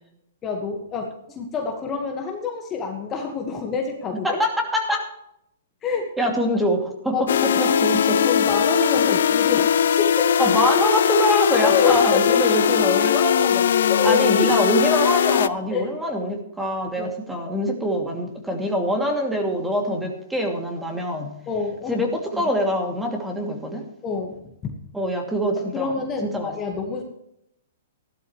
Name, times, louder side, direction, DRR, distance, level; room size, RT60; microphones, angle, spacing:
voice 1, 0.4-4.4 5.8-6.1 7.1-9.7 10.0-10.3 11.6-12.4 13.9-14.6 15.7-15.9 17.0-17.1 21.5-22.5 24.0-24.8 25.5-27.0, left 5 dB, 20° left, 2 dB, 1.6 m, -27 dB
voice 2, 4.2-5.1 6.2-7.2 7.6-8.2 10.4-21.3 21.9-23.8 24.9-25.9 26.2-26.5, equal, 5° right, 2 dB, 2.6 m, -24 dB
sound 1, 7.3-15.5, left 8 dB, 70° left, 0.5 m, -19 dB
15.5 x 12.0 x 3.2 m, 0.76 s
hypercardioid pair, 140°, 0 cm